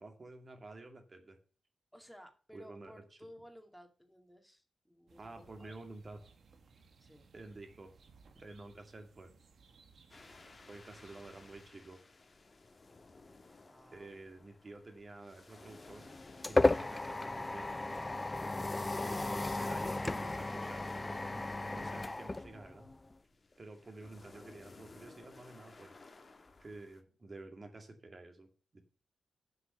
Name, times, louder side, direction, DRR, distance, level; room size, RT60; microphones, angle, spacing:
voice 1, 0.0-1.4 2.5-2.9 5.2-6.2 7.3-7.9 8.3-9.3 10.7-12.0 13.9-16.1 16.5-17.9 19.0-22.9 23.6-25.9 26.6-28.5 28.7-28.8, right 2 dB, 40° right, 5 dB, 2.3 m, -50 dB
voice 2, 1.9-5.8 6.1-6.3 7.0-7.2 13.6-14.1 23.7-24.0, equal, ahead, 4 dB, 2.1 m, -57 dB
sound 1, 5.1-11.7, right 4 dB, 70° right, 1.5 m, -63 dB
sound 2, 10.1-27.0, left 3 dB, 40° left, 1.5 m, -58 dB
sound 3, 15.7-23.1, left 2 dB, 25° left, 0.3 m, -34 dB
7.8 x 5.8 x 6.6 m, 0.38 s
cardioid pair, 60°, 0 cm